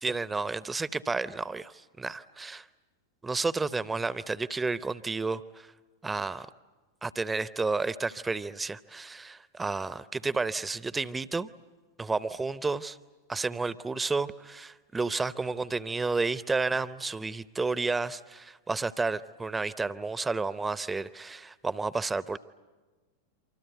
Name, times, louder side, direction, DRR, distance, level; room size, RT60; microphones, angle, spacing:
voice 1, 0.0-2.7 3.2-5.7 6.0-6.5 7.0-11.5 12.0-13.0 13.3-22.4, right 3 dB, 10° right, 17 dB, 0.8 m, -31 dB
28.0 x 25.0 x 8.1 m, 1.3 s
figure-of-eight pair, 90°, 0 cm